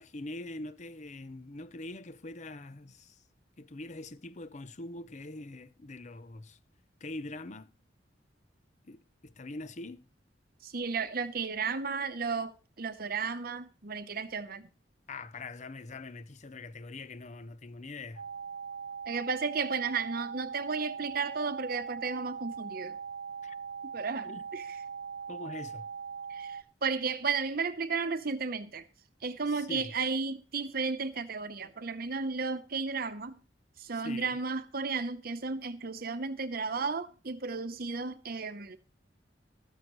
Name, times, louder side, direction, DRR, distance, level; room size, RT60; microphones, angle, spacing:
voice 1, 0.0-3.2 3.6-6.6 7.0-7.7 8.9-10.1 15.1-18.3 23.4-23.6 24.2-24.4 25.3-25.9 29.5-29.9 34.0-34.4, left 2 dB, 40° left, 0.8 m, -43 dB
voice 2, 10.6-14.7 19.1-23.0 23.9-24.8 26.3-28.9 29.2-33.4 33.8-38.8, right 4 dB, 55° right, 0.9 m, -33 dB
sound 1, 18.2-26.6, right 6 dB, 80° right, 0.7 m, -41 dB
14.0 x 13.5 x 3.1 m
head